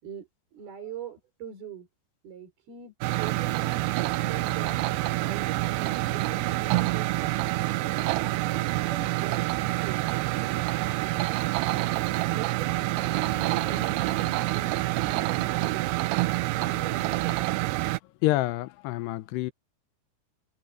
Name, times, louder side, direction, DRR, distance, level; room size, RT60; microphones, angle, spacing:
voice 1, 0.0-1.9 2.2-3.8 4.2-10.0 10.4-16.0 16.5-17.5, right 6 dB, 65° right, 6.9 m, -43 dB
sound 1, 3.0-18.0, right 19 dB, 85° right, 2.7 m, -27 dB
Bowed string instrument, 13.0-16.1, equal, 10° left, 3.3 m, -46 dB
voice 2, 18.2-19.5, left 17 dB, 90° left, 2.9 m, -27 dB
omnidirectional pair, 4.8 m